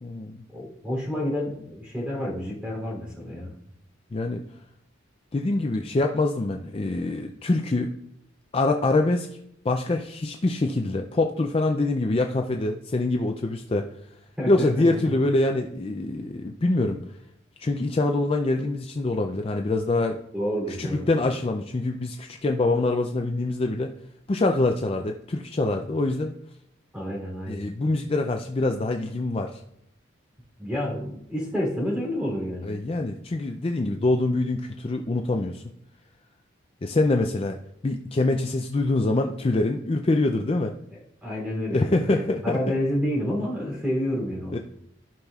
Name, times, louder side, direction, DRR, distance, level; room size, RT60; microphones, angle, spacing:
voice 1, 0.0-0.4 4.1-4.4 5.3-7.9 8.5-9.3 9.6-13.9 14.5-17.0 17.6-20.2 20.7-23.9 24.3-26.3 27.5-29.6 32.6-35.6 36.8-37.6 37.8-40.7 41.7-42.7 44.5-44.6, left 2 dB, 30° left, 4 dB, 0.4 m, -25 dB
voice 2, 0.5-3.5 14.4-15.1 20.3-21.1 26.9-27.7 30.6-32.7 40.9-44.6, equal, 5° right, -3 dB, 3.0 m, -29 dB
15.0 x 5.6 x 2.4 m, 0.76 s
head